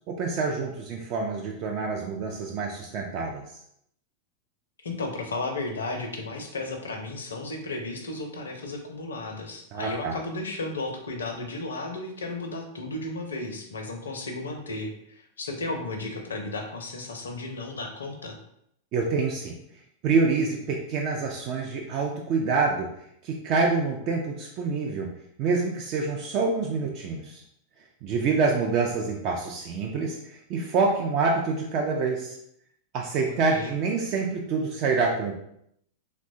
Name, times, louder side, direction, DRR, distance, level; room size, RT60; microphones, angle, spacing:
voice 1, 0.1-3.4 9.7-10.2 18.9-19.5 20.0-22.9 23.2-25.1 25.4-27.4 28.0-32.4 32.9-35.4, right 4 dB, 40° right, 0 dB, 0.3 m, -26 dB
voice 2, 4.8-18.4 33.5-33.7, left 2 dB, 70° left, 4 dB, 0.4 m, -34 dB
2.9 x 2.1 x 2.5 m, 0.74 s
figure-of-eight pair, 90°, 0 cm